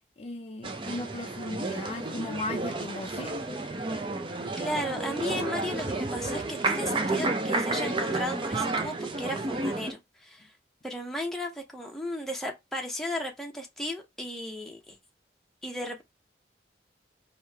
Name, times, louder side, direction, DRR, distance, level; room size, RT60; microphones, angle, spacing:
voice 1, 0.2-3.4, left 2 dB, 35° left, 0.4 m, -36 dB
sound 1, 0.6-9.9, right 2 dB, 30° right, 0.5 m, -31 dB
voice 2, 4.6-10.5 10.8-15.0 15.6-16.0, left 1 dB, ahead, 0.8 m, -35 dB
3.1 x 2.8 x 4.5 m
head